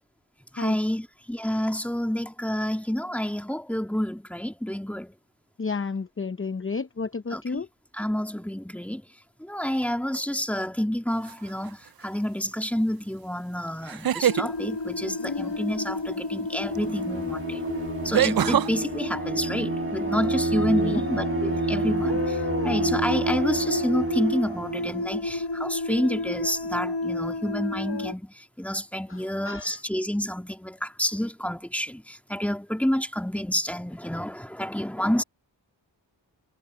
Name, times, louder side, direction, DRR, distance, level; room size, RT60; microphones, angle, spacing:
voice 1, 0.5-5.1 7.3-7.6 7.9-9.0 9.4-17.6 18.0-35.2, equal, 5° left, 2.1 m, -29 dB
voice 2, 5.6-7.7 20.8-21.0 29.1-29.8, left 4 dB, 30° left, 0.7 m, -31 dB
sound 1, 11.3-11.7 13.8-14.5 16.8-16.9 18.1-18.7, right 10 dB, 55° right, 0.5 m, -23 dB
sound 2, 14.2-28.1, left 2 dB, 70° left, 1.5 m, -31 dB
Bowed string instrument, 16.6-25.1, right 3 dB, 30° right, 1.7 m, -29 dB
wide cardioid pair, 55°, 44 cm